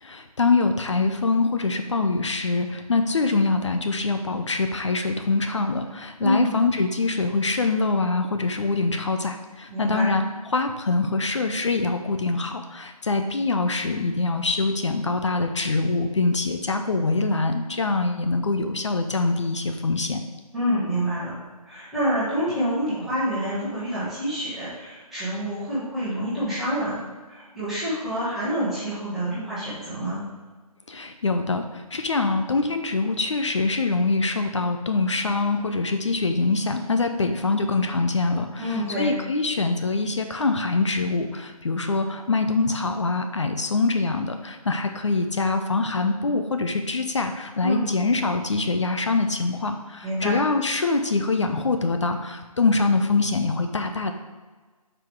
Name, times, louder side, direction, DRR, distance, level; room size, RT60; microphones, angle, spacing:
voice 1, 0.0-10.2 10.5-20.2 30.9-54.1, left 3 dB, 50° left, 6 dB, 0.6 m, -24 dB
voice 2, 6.2-6.5 9.7-10.0 20.5-21.3 21.6-27.0 27.3-30.2 38.6-39.1 47.6-47.8 50.0-50.3, equal, ahead, -14 dB, 1.2 m, -27 dB
5.9 x 4.9 x 4.6 m, 1.3 s
figure-of-eight pair, 170°, 19 cm